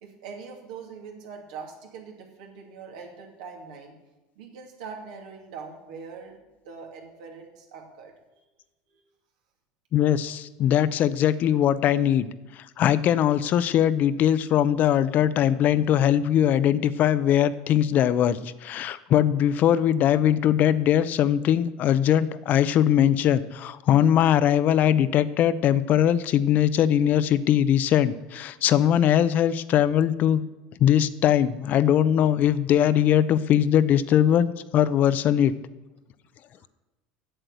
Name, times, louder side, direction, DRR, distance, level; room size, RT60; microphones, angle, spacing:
voice 1, 0.0-4.0 4.4-6.4 6.6-8.1 8.9-9.0 36.6-36.7, right 5 dB, 80° right, 1 dB, 2.5 m, -42 dB
voice 2, 9.9-12.3 12.5-30.4 30.8-35.5, left 10 dB, 45° left, 15 dB, 0.6 m, -21 dB
7.9 x 7.7 x 8.2 m, 1.1 s
supercardioid pair, 105°, 4 cm